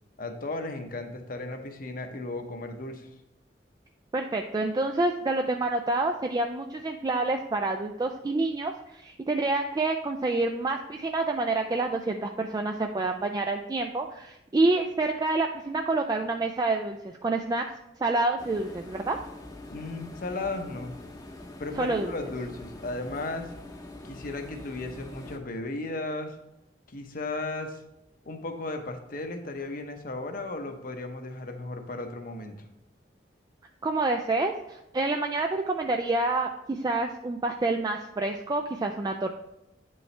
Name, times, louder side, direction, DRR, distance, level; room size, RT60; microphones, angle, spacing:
voice 1, 0.2-3.1 19.7-20.9 21.6-23.5 24.0-26.4 26.9-27.8 28.3-32.5, left 2 dB, 50° left, 5 dB, 0.9 m, -35 dB
voice 2, 4.1-17.6 18.0-19.2 21.8-22.1 33.8-39.3, right 2 dB, 20° right, 4 dB, 0.3 m, -28 dB
industrial laundry, 18.4-25.4, left 1 dB, 20° left, 0.8 m, -44 dB
9.4 x 5.4 x 3.3 m, 0.87 s
head